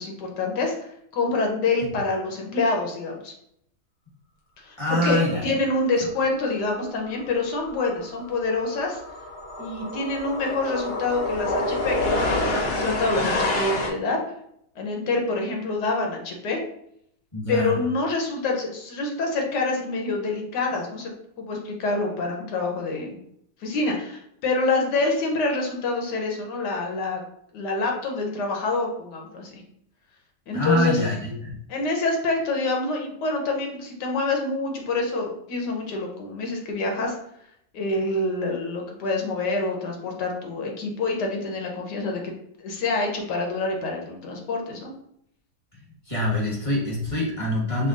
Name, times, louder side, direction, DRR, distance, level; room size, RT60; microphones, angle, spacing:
voice 1, 0.0-3.3 4.6-9.0 9.6-14.2 14.8-16.6 17.5-21.1 21.4-23.2 23.6-27.2 27.5-29.6 30.5-31.0 31.7-37.2 37.7-42.2 42.6-44.9, left 3 dB, 90° left, 1 dB, 1.5 m, -26 dB
voice 2, 4.8-5.5 17.3-17.7 30.5-31.6 46.1-47.9, left 1 dB, 20° left, -5 dB, 1.3 m, -25 dB
sound 1, 7.1-7.3 7.6-13.9, left 2 dB, 55° left, 0.7 m, -28 dB
6.3 x 2.3 x 2.5 m, 0.73 s
omnidirectional pair, 1.8 m